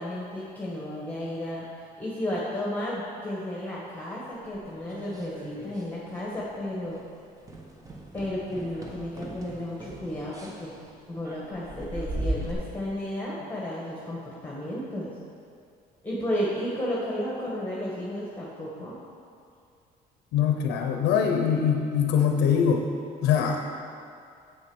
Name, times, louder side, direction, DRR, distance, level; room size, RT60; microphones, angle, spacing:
voice 1, 0.0-1.7 2.0-7.0 8.1-10.7 11.1-15.2 16.0-18.9, left 1 dB, 10° left, -5 dB, 1.6 m, -33 dB
sound 1, 4.5-5.9 6.2-6.5 6.8-7.0 7.4-12.5, right 1 dB, 20° right, 1.3 m, -38 dB
voice 2, 20.3-22.9 23.2-23.6, left 7 dB, 90° left, 3 dB, 0.8 m, -23 dB
7.9 x 6.9 x 6.3 m, 2.4 s
cardioid pair, 110°, 17 cm